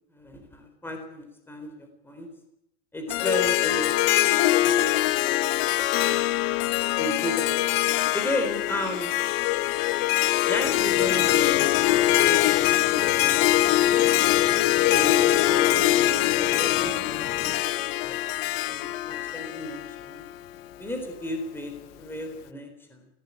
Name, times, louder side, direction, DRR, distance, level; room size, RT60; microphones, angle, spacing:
voice 1, 0.1-2.3 2.9-4.0 4.6-5.2 6.0-6.2 6.6-6.7 7.0-7.5 8.1-9.1 10.5-13.4 14.9-16.0 16.3-18.2 18.7-20.2 20.8-23.1, left 1 dB, 5° left, 5 dB, 3.9 m, -34 dB
Harp, 3.1-20.4, left 15 dB, 55° left, 1.0 m, -23 dB
sound 1, 10.6-17.6, left 10 dB, 30° left, 1.3 m, -41 dB
18.0 x 17.5 x 9.9 m, 0.82 s
supercardioid pair, 150°, 36 cm